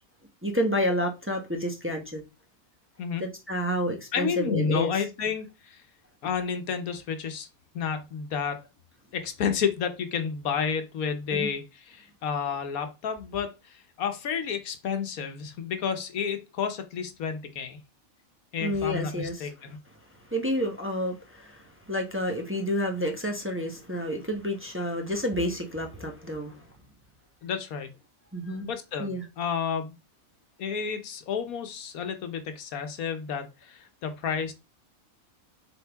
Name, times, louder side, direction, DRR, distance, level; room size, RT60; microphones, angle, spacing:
voice 1, 0.4-2.2 3.2-4.9 11.3-11.5 18.6-19.5 20.3-26.6 28.3-28.7 29.0-29.2, equal, 10° right, 1.0 m, -29 dB
voice 2, 4.1-5.8 6.2-7.5 7.7-8.6 9.1-17.8 18.5-19.8 27.4-27.9 28.6-29.9 30.6-34.5, left 6 dB, 90° left, 1.4 m, -31 dB
7.5 x 3.7 x 3.5 m
omnidirectional pair, 1.5 m